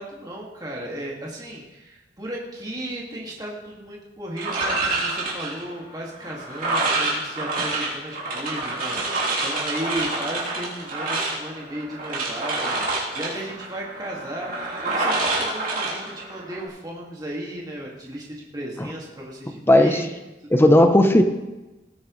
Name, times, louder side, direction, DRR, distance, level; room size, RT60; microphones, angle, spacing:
voice 1, 0.0-9.0 9.4-20.0, right 1 dB, 25° right, -3 dB, 2.1 m, -35 dB
sound 1, 4.4-16.7, right 2 dB, 55° right, 3.2 m, -27 dB
voice 2, 19.7-20.1 20.5-21.2, left 1 dB, 15° left, 6 dB, 0.7 m, -15 dB
18.0 x 9.3 x 3.2 m, 1.1 s
head